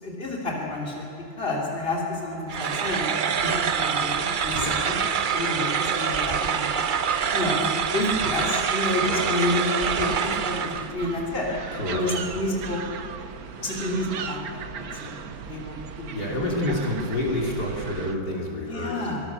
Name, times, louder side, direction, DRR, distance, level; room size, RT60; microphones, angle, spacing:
voice 1, 0.0-1.1 1.4-3.1 3.4-5.0 5.3-6.9 7.3-11.5 11.9-12.8 13.6-15.1 15.5-16.8 18.7-19.2, left 2 dB, 35° left, -2 dB, 3.7 m, -29 dB
sound 1, 2.5-10.9, right 7 dB, 80° right, 0.4 m, -25 dB
voice 2, 9.0-9.3 11.7-12.0 16.1-19.0, left 1 dB, 65° left, -2 dB, 3.8 m, -28 dB
sound 2, 9.8-18.2, right 7 dB, 65° right, 1.4 m, -37 dB
24.5 x 19.0 x 7.1 m, 2.6 s
omnidirectional pair, 1.8 m